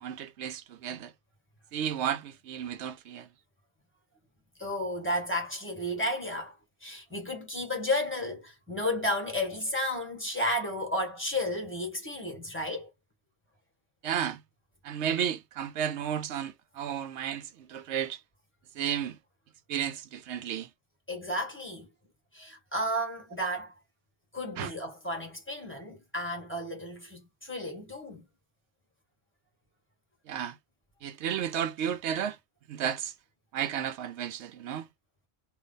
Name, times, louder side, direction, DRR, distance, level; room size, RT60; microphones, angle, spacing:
voice 1, 0.0-1.1 1.7-3.3 14.0-14.4 14.8-18.2 18.8-19.2 19.7-20.7 24.6-24.7 30.3-30.6 31.0-32.4 32.7-33.1 33.5-34.9, right 9 dB, 85° right, 0.9 m, -33 dB
voice 2, 4.6-6.5 6.8-12.9 21.1-21.9 22.3-23.7 24.3-28.2, left 1 dB, 10° left, 1.6 m, -32 dB
3.3 x 2.5 x 3.9 m
omnidirectional pair, 1.1 m